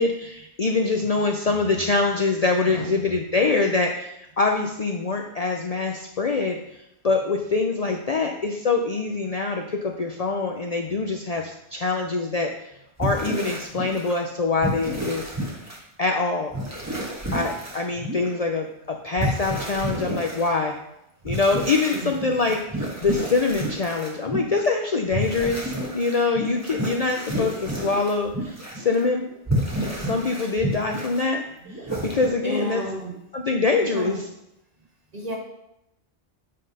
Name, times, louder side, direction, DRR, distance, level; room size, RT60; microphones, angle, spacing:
voice 1, 0.0-6.6 7.0-12.5 13.0-15.2 16.0-16.5 17.3-20.8 21.2-29.3 30.0-31.4 31.7-32.8 33.3-34.2, left 3 dB, 45° left, 2 dB, 0.6 m, -24 dB
voice 2, 1.4-1.9 2.6-3.1 8.2-8.3 9.4-9.5 10.9-11.0 19.2-19.8 21.9-22.3 32.4-33.2 33.8-34.2 35.1-35.4, right 1 dB, 35° right, -2 dB, 1.8 m, -34 dB
sound 1, 13.0-14.2 14.6-15.8 16.5-18.3 19.2-20.5 21.2-24.7 25.1-29.0 29.2-31.2 31.6-32.3, right 1 dB, 15° right, 1.4 m, -30 dB
8.6 x 3.6 x 5.3 m, 0.83 s
omnidirectional pair, 1.1 m